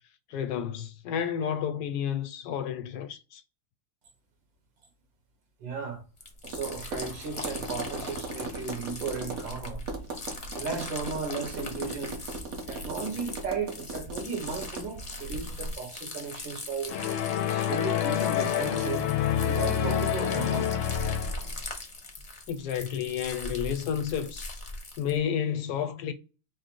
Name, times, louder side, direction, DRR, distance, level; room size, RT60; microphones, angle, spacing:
voice 1, 0.3-3.4 22.5-24.5 25.0-26.1, left 8 dB, 75° left, 0.9 m, -31 dB
voice 2, 5.6-6.0 6.5-9.8 10.5-12.2 12.7-17.0 17.3-19.2 19.4-20.7, right 4 dB, 70° right, 2.0 m, -35 dB
sound 1, 6.2-25.2, left 2 dB, 40° left, 0.5 m, -41 dB
Tap, 6.4-15.7, right 3 dB, 55° right, 1.3 m, -39 dB
sound 2, 16.9-21.5, left 9 dB, 90° left, 1.4 m, -27 dB
4.9 x 2.0 x 4.5 m
omnidirectional pair, 2.1 m